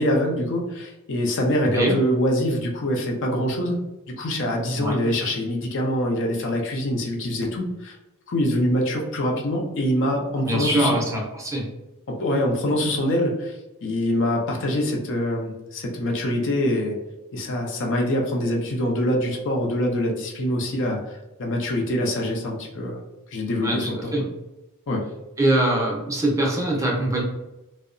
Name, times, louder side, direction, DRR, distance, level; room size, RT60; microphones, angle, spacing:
voice 1, 0.0-3.8 4.2-8.0 8.3-11.0 12.1-17.0 17.3-23.0 23.3-24.1 24.9-25.1, left 1 dB, 60° left, 0 dB, 0.5 m, -24 dB
voice 2, 10.4-11.6 23.6-23.8 24.1-24.2 25.4-27.2, right 1 dB, 15° right, -3 dB, 0.6 m, -22 dB
2.7 x 2.0 x 2.5 m, 1.0 s
head